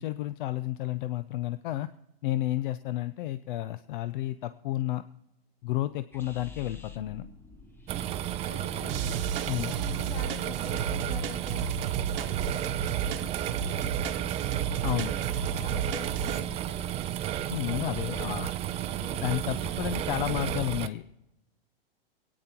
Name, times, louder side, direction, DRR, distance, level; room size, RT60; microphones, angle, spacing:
voice 1, 0.0-1.9 2.2-5.0 5.6-7.2 9.5-9.7 14.8-15.1 17.5-18.5 19.2-21.0, left 14 dB, 60° left, 13 dB, 0.6 m, -31 dB
sound 1, 6.1-11.2, left 3 dB, 10° left, 0.7 m, -48 dB
sound 2, 7.9-20.9, right 11 dB, 20° right, 0.5 m, -32 dB
voice 2, 8.0-9.1 9.6-14.6 15.3-16.9 17.8-18.4 18.9-20.3, left 4 dB, 75° left, 0 dB, 2.7 m, -46 dB
sound 3, 8.9-16.4, right 7 dB, 70° right, 1.0 m, -33 dB
25.0 x 9.4 x 2.9 m, 0.86 s
hypercardioid pair, 120°, 29 cm